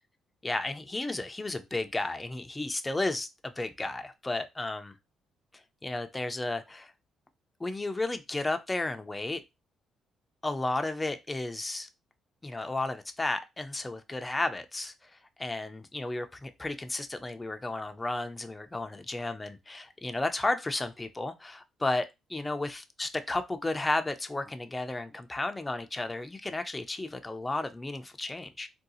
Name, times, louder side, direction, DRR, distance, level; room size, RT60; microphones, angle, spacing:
voice 1, 0.4-5.0 5.8-6.9 7.6-9.4 10.4-11.9 12.4-15.1 15.4-28.7, left 2 dB, 15° left, 0.4 m, -33 dB
3.7 x 2.3 x 2.7 m
cardioid pair, 85°, 0 cm